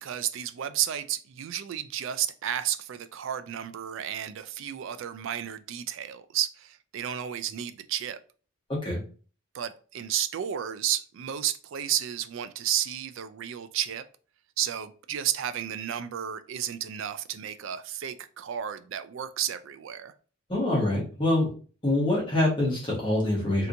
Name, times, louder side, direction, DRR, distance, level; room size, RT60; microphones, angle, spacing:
voice 1, 0.0-8.2 9.5-14.0 14.6-20.1, right 10 dB, 60° right, 0.3 m, -32 dB
voice 2, 20.5-21.5 21.8-23.7, left 1 dB, 25° left, 1.2 m, -25 dB
3.3 x 2.8 x 2.5 m
head